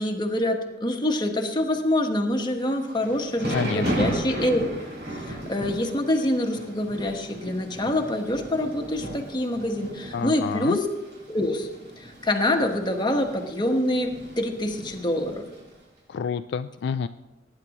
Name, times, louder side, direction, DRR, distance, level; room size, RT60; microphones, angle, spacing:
voice 1, 0.0-4.7 5.3-10.9 11.3-11.7 12.0-15.4, left 1 dB, 25° left, 2 dB, 1.2 m, -26 dB
Thunder / Rain, 2.7-15.7, right 1 dB, 65° right, 5.0 m, -35 dB
voice 2, 3.5-4.1 10.1-10.8 16.1-17.1, left 6 dB, 65° left, 10 dB, 0.3 m, -29 dB
19.0 x 9.8 x 3.0 m, 1.0 s
head